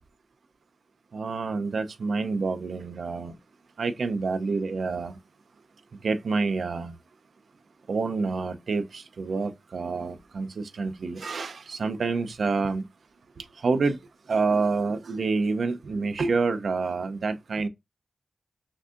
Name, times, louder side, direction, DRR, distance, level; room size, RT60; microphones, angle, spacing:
voice 1, 1.1-3.3 3.8-5.1 6.0-6.9 7.9-8.8 9.2-10.5 10.8-12.8 13.6-14.0 14.3-17.7, right 4 dB, 75° right, 0.6 m, -27 dB
5.8 x 2.7 x 2.5 m
wide cardioid pair, 85°, 0 cm